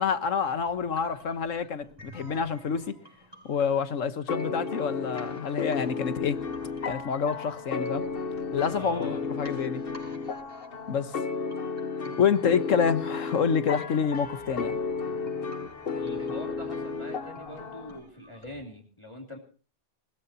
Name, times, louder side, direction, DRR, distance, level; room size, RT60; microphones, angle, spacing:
voice 1, 0.0-2.9 3.4-6.4 6.8-8.1 8.5-9.8 10.9-11.1 12.2-14.8, left 6 dB, 75° left, 1.5 m, -27 dB
sound 1, 0.5-18.5, equal, 20° right, 6.2 m, -52 dB
sound 2, 4.3-18.0, left 5 dB, 50° left, 1.2 m, -33 dB
voice 2, 8.7-9.2 15.9-19.4, left 1 dB, 20° left, 2.9 m, -42 dB
21.0 x 20.5 x 2.9 m
omnidirectional pair, 1.3 m